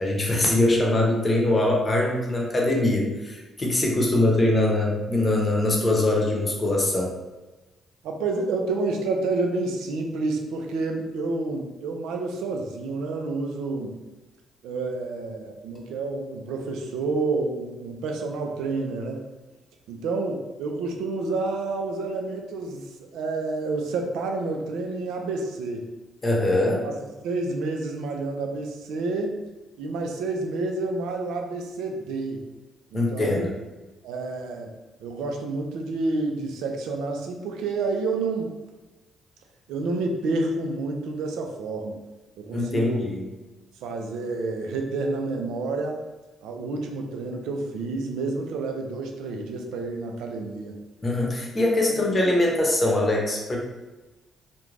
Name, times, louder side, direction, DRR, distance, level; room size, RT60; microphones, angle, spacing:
voice 1, 0.0-7.1 26.2-26.8 32.9-33.5 42.5-43.2 51.0-53.6, left 1 dB, 30° left, -1 dB, 0.7 m, -22 dB
voice 2, 8.0-14.0 14.6-19.2 19.9-25.8 26.6-26.9 27.2-29.4 29.8-32.4 32.9-33.5 34.0-34.7 35.0-38.5 39.7-42.0 42.4-43.0 43.8-46.0 46.4-50.8 51.9-52.0, right 3 dB, 90° right, 2 dB, 0.4 m, -29 dB
2.4 x 2.2 x 3.2 m, 1.1 s
cardioid pair, 90°, 0 cm